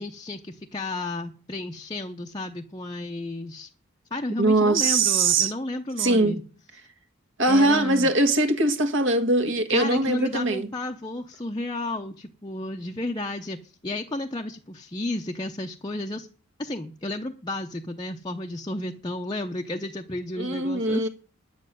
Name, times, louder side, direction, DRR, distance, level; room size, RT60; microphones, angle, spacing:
voice 1, 0.0-3.7 4.1-6.4 7.5-8.1 9.7-16.3 16.6-21.1, left 2 dB, 20° left, 0.6 m, -32 dB
voice 2, 4.4-5.5 6.0-6.4 7.4-10.7 20.4-21.1, right 2 dB, 60° right, 1.6 m, -21 dB
10.0 x 7.6 x 9.1 m
head